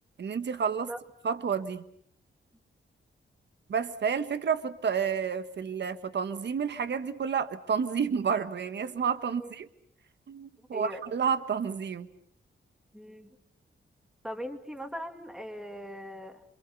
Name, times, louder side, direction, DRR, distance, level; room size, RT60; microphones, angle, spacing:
voice 1, 0.2-0.9 1.2-1.8 3.7-9.7 10.3-12.1, right 6 dB, 60° right, 11 dB, 1.5 m, -30 dB
voice 2, 10.7-11.0 12.9-13.3 14.2-16.4, equal, ahead, 6 dB, 2.5 m, -40 dB
27.0 x 26.5 x 7.0 m, 0.65 s
wide cardioid pair, 150°, 20 cm